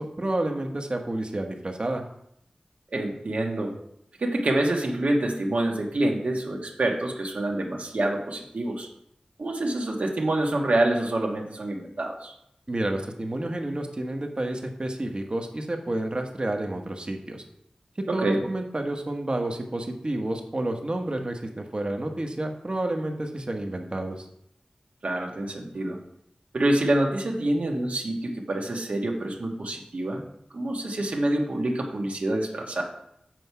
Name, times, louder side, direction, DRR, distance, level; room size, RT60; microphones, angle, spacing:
voice 1, 0.0-2.0 12.7-17.4 18.1-24.2, right 1 dB, 40° right, 4 dB, 1.1 m, -30 dB
voice 2, 2.9-3.7 4.2-8.9 9.4-12.3 18.1-18.4 25.0-26.0 26.5-30.2 30.5-32.8, right 1 dB, 75° right, 0 dB, 1.4 m, -26 dB
7.7 x 4.8 x 5.6 m, 0.75 s
wide cardioid pair, 70°, 2 cm